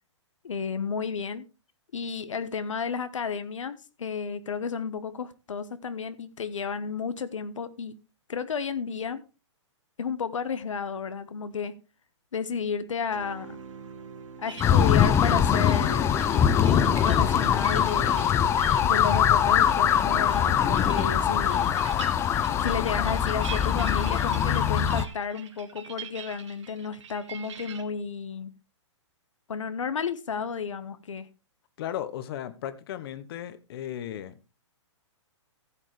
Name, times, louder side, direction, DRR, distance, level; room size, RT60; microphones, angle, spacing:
voice 1, 0.4-1.5 1.9-8.0 8.3-9.2 10.0-11.7 12.3-13.6 14.4-16.1 16.7-18.4 18.8-21.7 22.6-28.5 29.5-31.3, left 6 dB, 90° left, 1.0 m, -32 dB
sound 1, 13.1-22.7, right 5 dB, 85° right, 1.7 m, -45 dB
sound 2, 14.5-27.8, right 8 dB, 70° right, 2.0 m, -44 dB
sound 3, 14.6-25.0, left 9 dB, 15° left, 0.6 m, -22 dB
voice 2, 31.8-34.5, left 11 dB, 50° left, 1.1 m, -36 dB
15.5 x 7.4 x 3.3 m
hypercardioid pair, 135°, 16 cm